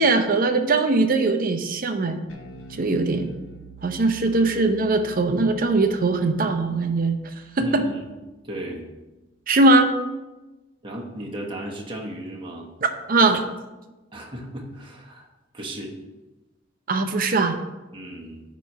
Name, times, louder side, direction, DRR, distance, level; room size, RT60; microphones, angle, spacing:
voice 1, 0.0-2.2 2.8-3.3 3.8-7.2 7.6-7.8 9.5-9.9 13.1-13.4 16.9-17.6, right 3 dB, 45° right, 7 dB, 0.6 m, -20 dB
Bass guitar, 2.3-8.7, right 3 dB, 80° left, 0.9 m, -47 dB
voice 2, 7.6-8.1 8.4-8.8 10.8-12.7 14.1-15.3 15.5-15.9 17.9-18.4, right 1 dB, 25° right, -1 dB, 1.1 m, -35 dB
9.2 x 3.1 x 5.4 m, 1.1 s
head